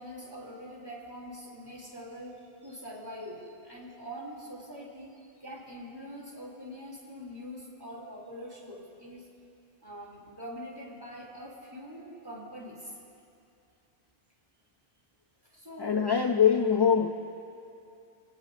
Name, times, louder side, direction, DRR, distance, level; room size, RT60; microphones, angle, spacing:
voice 1, 0.0-2.4 2.6-9.3 9.8-12.9 15.5-16.1, equal, 20° right, -4 dB, 3.3 m, -44 dB
voice 2, 15.8-17.1, left 7 dB, 35° left, 4 dB, 0.4 m, -23 dB
27.0 x 17.5 x 2.7 m, 2.6 s
omnidirectional pair, 1.1 m